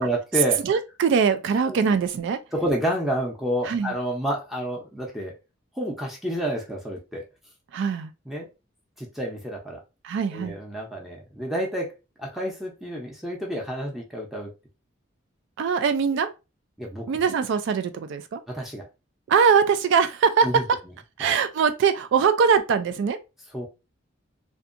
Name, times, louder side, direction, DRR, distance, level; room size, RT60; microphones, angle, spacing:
voice 1, 0.0-0.6 1.7-1.8 2.5-5.3 5.8-7.2 8.3-8.5 9.0-9.8 10.3-11.9 12.2-14.5 16.8-17.1 18.5-18.8 20.4-20.6 21.2-21.3 23.5-23.7, equal, ahead, 0.6 m, -29 dB
voice 2, 0.6-2.4 3.6-3.9 7.7-8.1 10.0-10.6 15.6-16.3 17.1-18.4 19.3-20.8 21.2-23.2, right 6 dB, 65° right, 0.3 m, -22 dB
2.6 x 2.3 x 2.5 m
head